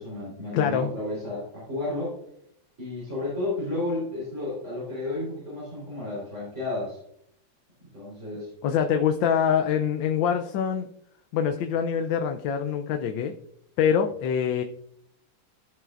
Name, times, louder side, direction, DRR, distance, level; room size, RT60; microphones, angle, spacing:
voice 1, 0.0-2.2 2.8-7.0 7.9-8.5, left 2 dB, 35° right, -7 dB, 4.2 m, -32 dB
voice 2, 0.5-0.9 8.6-10.9 11.3-13.3 13.8-14.6, left 8 dB, 75° left, 6 dB, 1.4 m, -24 dB
14.0 x 5.9 x 2.5 m, 0.72 s
omnidirectional pair, 2.1 m